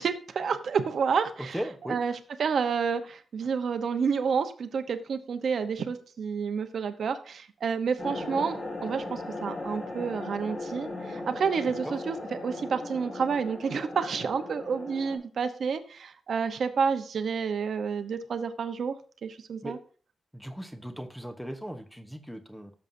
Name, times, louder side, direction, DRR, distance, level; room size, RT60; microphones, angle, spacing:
voice 1, 0.0-1.6 1.9-12.2 12.4-19.0 19.2-19.8, right 6 dB, 55° right, 9 dB, 0.9 m, -29 dB
voice 2, 1.5-2.0 11.8-12.0 19.6-19.7 20.3-22.7, equal, ahead, 7 dB, 0.9 m, -37 dB
sound 1, 8.0-15.2, left 2 dB, 45° left, 5.9 m, -37 dB
16.0 x 7.3 x 2.7 m, 0.41 s
wide cardioid pair, 180°, 0 cm